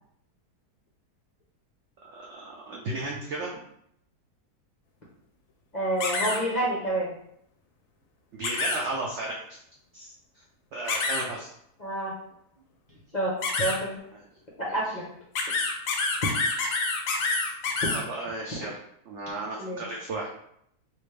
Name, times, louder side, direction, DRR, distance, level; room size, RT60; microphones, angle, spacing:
voice 1, 2.0-3.5 8.3-9.4 9.9-10.4 10.7-11.5 14.1-14.2 14.6-14.8 17.9-18.8 19.1-20.3, right 2 dB, 80° right, -2 dB, 0.6 m, -34 dB
voice 2, 5.7-7.1 11.8-12.1 13.1-14.0 14.6-15.1 17.8-17.9 19.6-19.8, right 1 dB, 50° left, -7 dB, 0.5 m, -28 dB
sound 1, 6.0-6.4 8.4-8.8 10.9-11.2 13.4-13.8 15.4-18.0, left 3 dB, 65° left, 0.8 m, -27 dB
3.4 x 2.4 x 3.2 m, 0.72 s
omnidirectional pair, 1.8 m